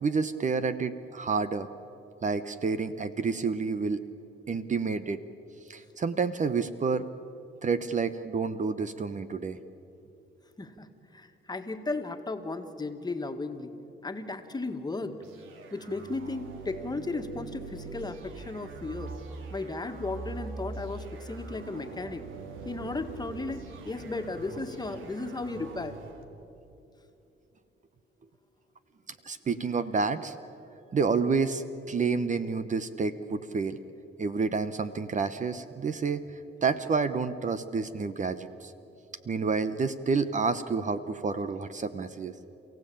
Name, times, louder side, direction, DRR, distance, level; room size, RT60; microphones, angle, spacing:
voice 1, 0.0-1.7 2.2-4.0 4.5-5.2 5.7-7.1 7.6-9.6 29.2-30.4 30.9-33.8 34.2-36.3 36.6-38.7 39.3-42.3, right 4 dB, 40° right, 11 dB, 0.9 m, -29 dB
voice 2, 10.6-13.7 14.0-15.2 15.7-19.1 19.5-22.2 22.7-26.0, left 3 dB, 20° left, 6 dB, 2.0 m, -35 dB
sound 1, 15.2-26.2, right 3 dB, 90° right, 2.1 m, -43 dB
29.0 x 16.0 x 8.8 m, 2.8 s
cardioid pair, 90°, 20 cm